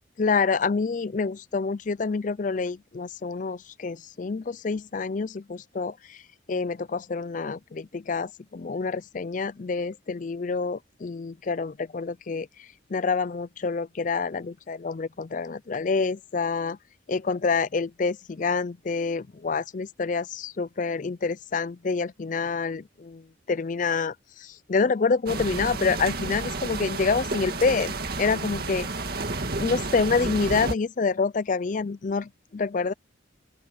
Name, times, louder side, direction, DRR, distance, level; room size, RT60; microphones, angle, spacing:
voice 1, 0.2-6.2 6.5-16.8 17.1-28.9 29.6-32.9, left 4 dB, 40° left, 0.4 m, -27 dB
sound 1, 25.3-30.7, right 3 dB, 50° right, 2.2 m, -31 dB
open air
head